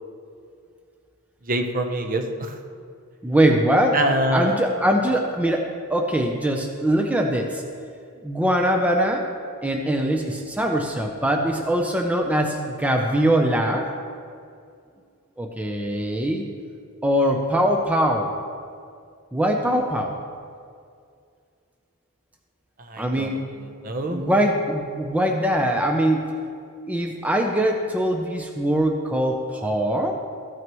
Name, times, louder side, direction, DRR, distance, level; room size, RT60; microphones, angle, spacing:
voice 1, 1.5-2.5 3.9-4.6 22.9-23.3 23.8-24.2, right 1 dB, 40° right, 5 dB, 0.8 m, -24 dB
voice 2, 3.2-4.0 4.3-7.6 8.2-9.2 9.6-13.9 15.4-16.5 17.0-18.3 19.3-20.1 23.0-23.4 24.1-26.4 26.9-30.1, right 1 dB, 5° right, 2 dB, 0.6 m, -22 dB
14.5 x 9.2 x 3.0 m, 2.3 s
head